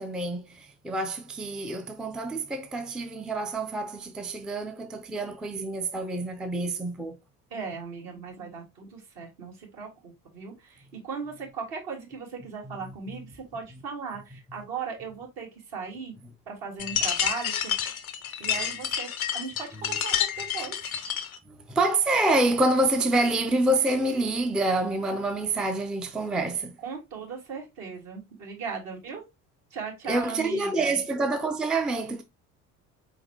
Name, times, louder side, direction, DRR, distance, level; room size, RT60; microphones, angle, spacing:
voice 1, 0.0-7.2 13.1-13.2 21.5-26.8 30.1-32.2, right 2 dB, ahead, 0.4 m, -27 dB
voice 2, 7.5-16.1 16.5-17.7 18.4-20.8 26.8-29.2 29.7-31.0, right 5 dB, 55° right, 1.8 m, -38 dB
sound 1, 16.8-21.4, left 8 dB, 85° left, 0.6 m, -29 dB
4.5 x 3.8 x 2.8 m
figure-of-eight pair, 50°, 41 cm